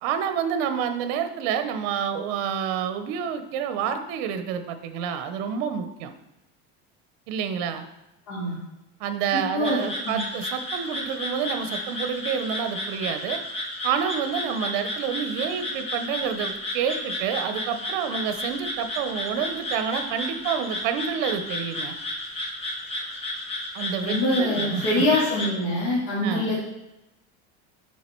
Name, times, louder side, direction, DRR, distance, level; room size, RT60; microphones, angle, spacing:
voice 1, 0.0-6.1 7.3-7.9 9.0-13.4 13.8-21.9 23.7-25.0 26.2-26.5, right 8 dB, 60° right, 9 dB, 0.8 m, -28 dB
voice 2, 8.3-8.6 9.3-10.2 24.0-26.6, left 1 dB, 60° left, -8 dB, 2.7 m, -25 dB
sound 1, 9.6-25.5, left 1 dB, 20° left, 0.9 m, -32 dB
7.4 x 4.8 x 4.5 m, 0.94 s
cardioid pair, 175°, 29 cm